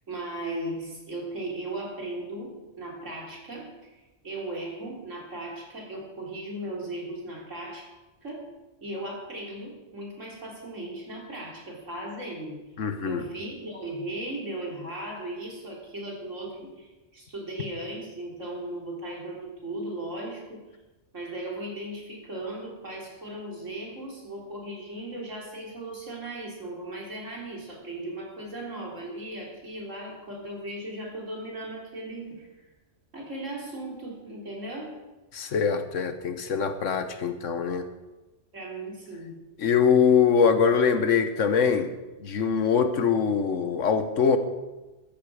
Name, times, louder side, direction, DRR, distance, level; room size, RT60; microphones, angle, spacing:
voice 1, 0.1-3.9 4.2-7.9 8.2-8.5 8.8-12.6 13.1-20.6 21.1-32.7 33.1-35.0 38.5-39.4, right 1 dB, 80° right, -2 dB, 3.8 m, -37 dB
voice 2, 12.8-13.2 35.3-37.9 39.6-41.9 42.2-44.4, left 6 dB, 85° left, 9 dB, 1.5 m, -23 dB
14.0 x 13.5 x 4.9 m, 1.1 s
omnidirectional pair, 1.3 m